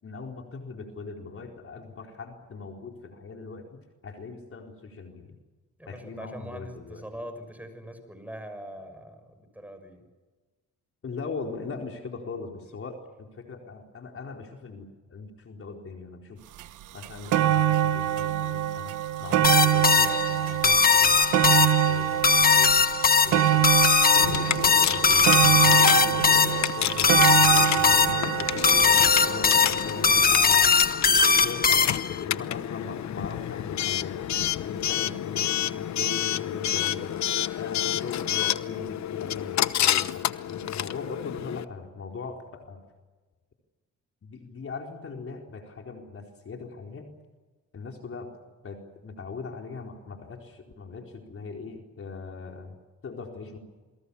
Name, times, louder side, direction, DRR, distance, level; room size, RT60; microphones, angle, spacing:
voice 1, 0.0-5.4 5.9-7.0 11.0-16.4 16.9-22.9 23.2-23.8 24.2-25.3 25.6-30.7 31.2-34.3 34.6-37.1 37.5-42.8 44.2-47.1 47.7-48.3 48.6-52.8 53.0-53.6, left 4 dB, 45° left, 2 dB, 4.4 m, -40 dB
voice 2, 5.8-10.0, equal, 5° right, 8 dB, 6.8 m, -42 dB
sound 1, 16.6-16.7 17.0-30.2 31.0-31.1, right 11 dB, 85° right, 1.4 m, -25 dB
sound 2, 19.4-32.2, left 5 dB, 30° left, 1.2 m, -20 dB
Coin (dropping) / Alarm, 24.2-41.6, left 12 dB, 65° left, 1.0 m, -29 dB
28.5 x 22.5 x 7.2 m, 1.3 s
cardioid pair, 90°, 30 cm